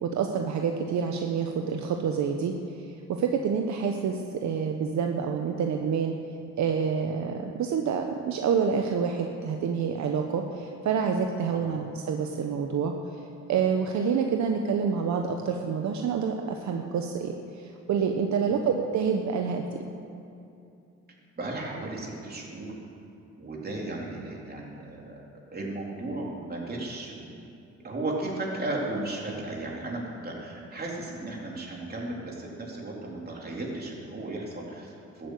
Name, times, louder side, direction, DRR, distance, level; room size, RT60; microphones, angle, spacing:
voice 1, 0.0-2.5 3.1-6.1 6.6-12.9 13.5-19.6, right 6 dB, 65° right, 3 dB, 1.0 m, -27 dB
voice 2, 21.4-22.7 23.4-25.2 25.5-27.4 27.8-35.3, right 2 dB, 30° right, -3 dB, 3.8 m, -35 dB
13.0 x 8.7 x 8.5 m, 2.7 s
cardioid pair, 90°, 30 cm